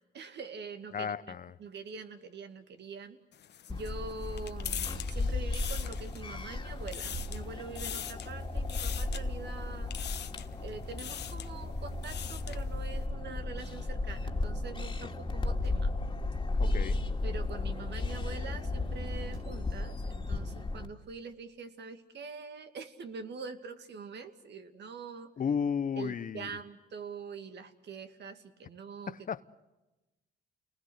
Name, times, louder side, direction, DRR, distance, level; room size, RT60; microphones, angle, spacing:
voice 1, 0.1-1.1 1.6-3.2 3.7-9.9 10.6-15.9 17.2-25.3 26.0-29.2, right 5 dB, 60° right, 2.4 m, -44 dB
voice 2, 0.9-1.6 16.6-17.0 25.4-26.5 29.1-29.4, left 7 dB, 40° left, 0.9 m, -33 dB
sound 1, 3.3-6.4 6.7-7.5 7.8-8.3 8.7-9.2 9.9-10.5 10.9-11.5 11.9-12.6, left 9 dB, 60° left, 1.2 m, -41 dB
sound 2, 3.7-20.9, left 2 dB, 20° left, 2.5 m, -35 dB
sound 3, 4.3-6.1 6.6-8.5 8.9-9.1 10.4-11.2 11.6-11.7 12.6-12.7 13.0-13.1 13.2-13.3 14.2-14.4 14.7-14.8 15.2-15.9 17.7-17.8 18.8-19.7 21.0-21.1, right 5 dB, 80° right, 6.2 m, -53 dB
29.5 x 20.0 x 8.1 m
cardioid pair, 90°, 20 cm